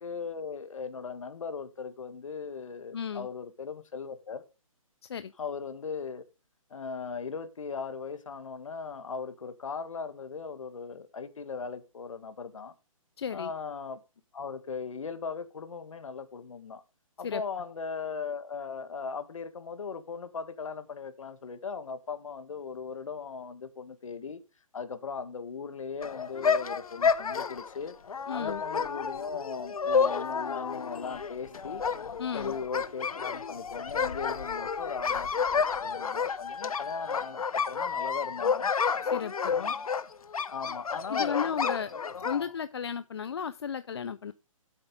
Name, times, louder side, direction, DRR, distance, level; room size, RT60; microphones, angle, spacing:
voice 1, 0.0-4.4 5.4-6.2 6.7-12.7 13.3-14.0 14.3-16.8 17.2-24.4 24.7-27.9 28.3-31.8 32.3-38.7 39.5-39.7 40.5-42.5, left 5 dB, 65° left, 1.7 m, -38 dB
voice 2, 2.9-3.3 5.1-5.3 13.2-13.5 17.2-17.4 28.3-28.6 32.2-32.5 39.1-39.5 41.1-41.9 42.2-44.3, left 7 dB, 45° left, 0.5 m, -34 dB
sound 1, 26.0-42.4, left 6 dB, 85° left, 0.9 m, -30 dB
8.1 x 7.4 x 5.3 m
hypercardioid pair, 165°, 18 cm